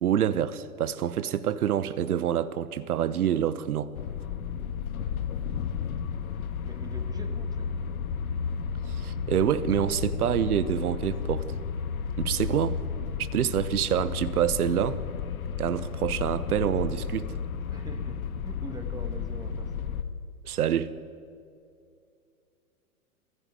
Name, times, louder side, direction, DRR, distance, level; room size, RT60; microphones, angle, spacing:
voice 1, 0.0-3.9 9.0-11.5 12.2-12.8 13.2-15.0 15.6-17.4 20.4-20.9, right 10 dB, 75° right, 1.2 m, -27 dB
sound 1, 3.9-20.0, left 6 dB, 65° left, 1.6 m, -32 dB
voice 2, 6.6-8.0 17.7-19.9, right 3 dB, 10° right, 1.8 m, -44 dB
Clapping, 12.5-12.7 13.9-14.1 15.3-15.4 15.7-16.0 17.1-17.2, right 5 dB, 50° right, 3.8 m, -54 dB
22.5 x 16.0 x 9.1 m
hypercardioid pair, 120°, 45 cm